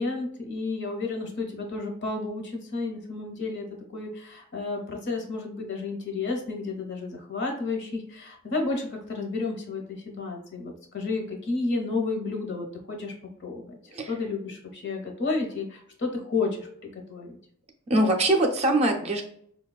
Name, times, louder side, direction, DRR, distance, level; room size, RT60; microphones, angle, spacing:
voice 1, 0.0-3.6 3.9-13.1 13.4-13.8 14.1-17.4, left 3 dB, 60° left, 1 dB, 0.9 m, -31 dB
voice 2, 17.9-19.2, right 1 dB, 30° right, 3 dB, 0.5 m, -23 dB
4.8 x 2.2 x 2.3 m, 0.66 s
head